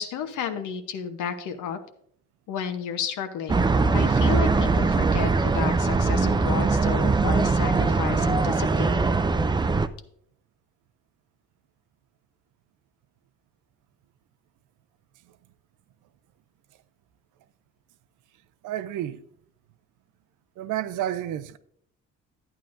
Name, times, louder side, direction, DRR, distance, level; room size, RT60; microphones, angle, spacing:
voice 1, 0.0-1.8 2.5-9.1, left 8 dB, 80° left, 1.0 m, -32 dB
sound 1, 3.5-9.9, right 4 dB, 15° right, 0.4 m, -22 dB
voice 2, 18.6-19.3 20.6-21.6, right 12 dB, 80° right, 0.6 m, -30 dB
11.0 x 9.0 x 2.6 m
cardioid pair, 90°, 30 cm